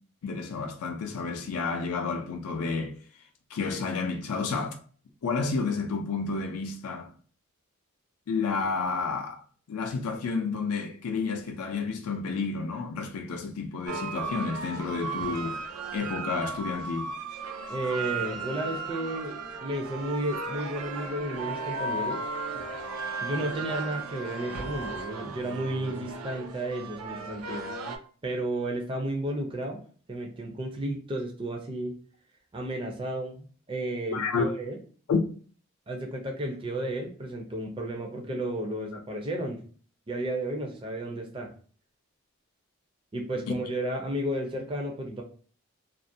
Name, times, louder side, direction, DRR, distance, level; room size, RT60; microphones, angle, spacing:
voice 1, 0.2-3.0 3.5-4.8 5.2-7.1 8.3-9.4 9.7-15.6 15.9-17.1 34.1-34.5 35.1-35.2 43.5-43.6, left 4 dB, 85° left, 0.4 m, -30 dB
sound 1, 13.9-28.0, right 3 dB, 85° right, 0.4 m, -35 dB
voice 2, 17.7-22.2 23.2-27.7 28.2-29.8 30.1-31.9 32.5-34.8 35.9-39.6 40.1-41.5 43.1-45.2, right 1 dB, 25° right, 0.4 m, -33 dB
2.4 x 2.1 x 2.6 m
head